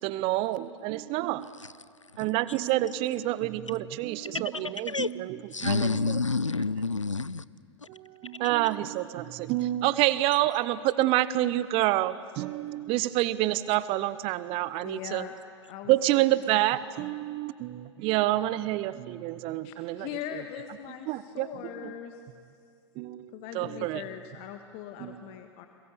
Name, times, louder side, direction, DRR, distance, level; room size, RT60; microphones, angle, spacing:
voice 1, 0.0-1.5 2.2-5.4 5.6-6.2 7.9-15.3 15.9-20.1 20.3-20.4 21.1-21.5 21.8-21.9 23.0-24.0 25.0-25.2, right 15 dB, 35° right, 17 dB, 0.9 m, -28 dB
voice 2, 4.2-5.1 5.5-7.4 7.8-7.9, left 4 dB, 85° left, 18 dB, 0.6 m, -29 dB
voice 3, 14.7-15.3 15.7-16.2 19.6-22.2 23.3-25.7, left 11 dB, 40° left, 6 dB, 1.6 m, -41 dB
30.0 x 22.5 x 7.0 m, 2.2 s
figure-of-eight pair, 95°, 15 cm